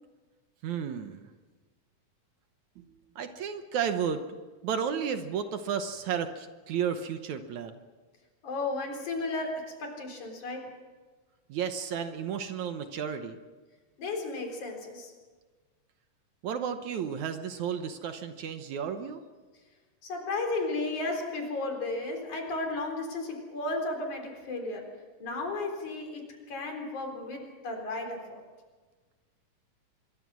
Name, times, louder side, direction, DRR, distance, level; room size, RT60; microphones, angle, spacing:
voice 1, 0.6-1.3 2.8-4.2 4.6-7.8 11.5-13.4 16.4-19.2, right 7 dB, 65° right, 8 dB, 2.3 m, -33 dB
voice 2, 8.4-10.7 14.0-15.1 20.0-24.9 25.2-28.4, left 2 dB, 60° left, 3 dB, 5.2 m, -34 dB
25.5 x 22.5 x 6.2 m, 1.4 s
omnidirectional pair, 3.8 m